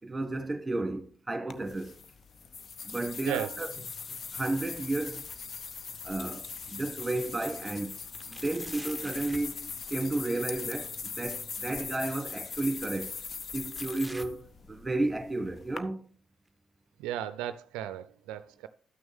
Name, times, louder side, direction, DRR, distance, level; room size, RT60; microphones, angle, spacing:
voice 1, 0.0-1.9 2.8-3.7 4.3-5.2 6.0-8.0 8.3-13.2 13.5-16.0, right 2 dB, 20° right, 1.6 m, -33 dB
sound 1, 1.5-15.8, left 5 dB, 55° left, 0.8 m, -41 dB
sound 2, 3.6-4.3 4.7-6.6 7.1-7.2 8.1-9.5 11.2-11.3 12.3-12.4 13.7-15.1 15.5-15.8 16.5-16.6 17.5-17.6, right 1 dB, 5° right, 0.9 m, -50 dB
voice 2, 17.0-18.7, right 11 dB, 85° right, 0.4 m, -35 dB
13.0 x 6.2 x 3.5 m
hypercardioid pair, 50°, 0 cm